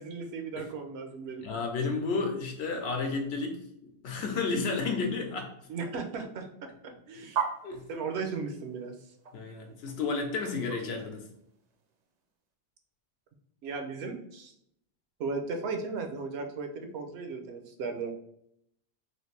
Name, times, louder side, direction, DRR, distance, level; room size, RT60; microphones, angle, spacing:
voice 1, 0.0-1.5 5.7-7.4 7.9-9.0 13.6-14.5 15.2-18.1, right 4 dB, 80° right, 6 dB, 0.9 m, -36 dB
voice 2, 1.4-5.5 7.6-7.8 9.3-11.3, left 4 dB, 80° left, 3 dB, 0.9 m, -32 dB
sound 1, 7.3-11.9, right 7 dB, 55° right, 0.5 m, -37 dB
3.2 x 2.4 x 3.2 m, 0.73 s
omnidirectional pair, 1.1 m